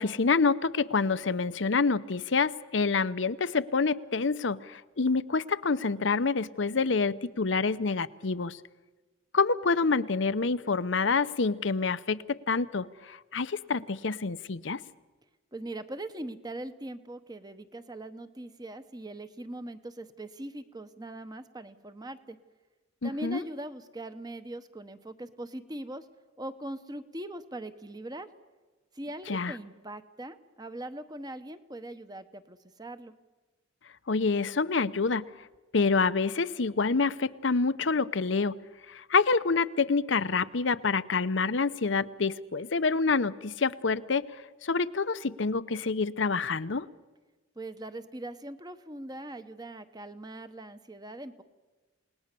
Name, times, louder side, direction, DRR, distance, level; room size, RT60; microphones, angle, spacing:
voice 1, 0.0-8.6 9.3-14.8 23.0-23.4 29.3-29.5 34.1-35.2 35.7-38.6 38.9-44.3 44.6-46.9, left 4 dB, 70° left, 14 dB, 0.8 m, -27 dB
voice 2, 15.5-22.4 23.0-26.0 26.4-28.3 28.9-33.1 47.6-51.4, right 1 dB, 20° right, 10 dB, 1.1 m, -41 dB
29.0 x 19.5 x 6.9 m, 1.2 s
head